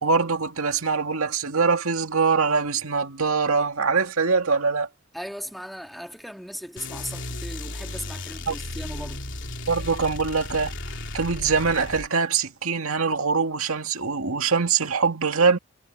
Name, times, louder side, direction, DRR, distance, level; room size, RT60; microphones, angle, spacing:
voice 1, 0.0-4.9 8.5-8.6 9.7-10.8 11.1-15.6, right 5 dB, 80° right, 2.3 m, -23 dB
voice 2, 5.1-9.2, equal, ahead, 2.0 m, -37 dB
sound 1, 6.8-12.1, left 2 dB, 55° left, 3.7 m, -35 dB
head